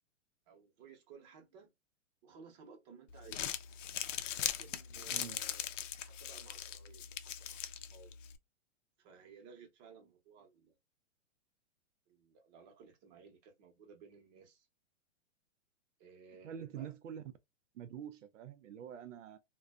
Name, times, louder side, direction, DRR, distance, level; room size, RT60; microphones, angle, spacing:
voice 1, 0.5-1.7 2.2-3.4 4.4-5.7 6.0-8.1 9.0-10.8 12.1-14.7 16.0-16.9, right 5 dB, 35° right, 0.8 m, -58 dB
Crumpling crinkling, 3.1-8.4, left 10 dB, 80° left, 0.5 m, -40 dB
voice 2, 16.4-17.2 17.7-19.4, right 9 dB, 85° right, 0.5 m, -46 dB
2.4 x 2.2 x 2.3 m
hypercardioid pair, 145°, 37 cm